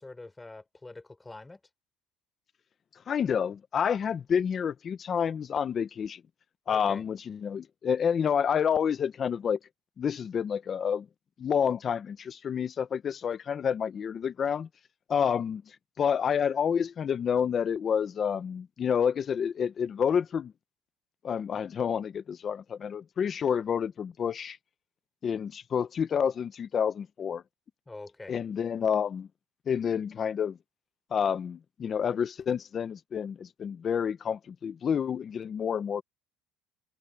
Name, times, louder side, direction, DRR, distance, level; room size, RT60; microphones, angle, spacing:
voice 1, 0.0-1.6 6.7-7.0 27.9-28.3, left 2 dB, 10° left, 4.9 m, -45 dB
voice 2, 3.1-6.2 6.7-9.6 10.0-11.1 11.4-14.7 15.1-20.5 21.2-24.6 25.2-27.4 28.3-29.3 29.7-30.6 31.1-36.0, left 7 dB, 30° left, 0.8 m, -29 dB
cardioid pair, 150°, 0 cm